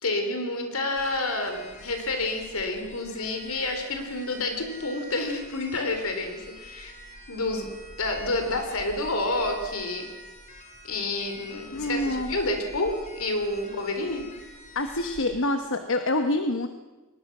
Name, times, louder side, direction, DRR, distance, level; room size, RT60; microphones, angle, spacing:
voice 1, 0.0-6.9 7.3-7.7 8.0-10.1 10.8-14.2, left 2 dB, 80° left, 5 dB, 3.7 m, -29 dB
sound 1, 0.9-15.2, left 1 dB, 35° left, 3.4 m, -46 dB
voice 2, 11.7-12.4 14.7-16.7, left 1 dB, 65° left, 7 dB, 1.1 m, -26 dB
22.0 x 20.0 x 6.1 m, 1.2 s
head